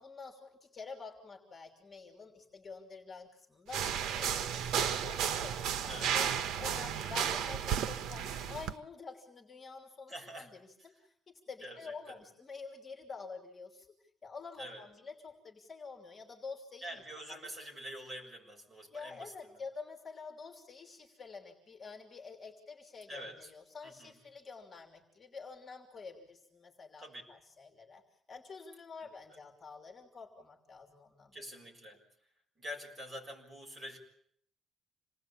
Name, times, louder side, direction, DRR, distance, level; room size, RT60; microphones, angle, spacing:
voice 1, 0.0-3.8 4.1-6.3 6.6-13.9 14.2-17.4 18.9-28.0 28.3-31.3, left 4 dB, 25° left, 3 dB, 3.1 m, -48 dB
sound 1, 3.7-8.7, right 8 dB, 80° right, 1.1 m, -33 dB
voice 2, 10.1-10.5 11.6-12.2 14.6-14.9 16.8-19.3 23.1-23.5 23.8-24.1 27.0-27.2 31.3-32.0 32.6-34.0, equal, 15° right, 1 dB, 6.6 m, -46 dB
28.0 x 20.0 x 8.6 m, 0.68 s
cardioid pair, 165°, 0 cm